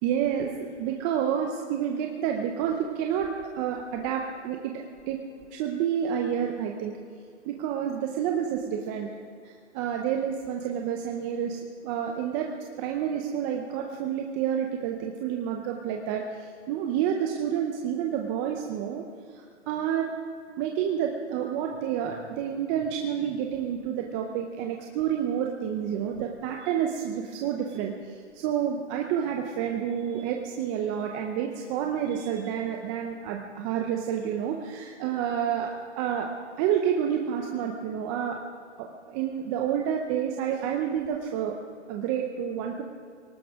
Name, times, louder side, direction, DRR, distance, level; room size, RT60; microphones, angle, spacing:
voice 1, 0.0-5.2 5.5-6.9 7.5-9.1 9.4-12.5 12.8-20.1 20.6-36.3 36.6-38.4 38.8-41.5 41.9-42.8, right 9 dB, 15° right, 2 dB, 0.6 m, -29 dB
19.5 x 18.5 x 3.6 m, 2.2 s
hypercardioid pair, 145°, 37 cm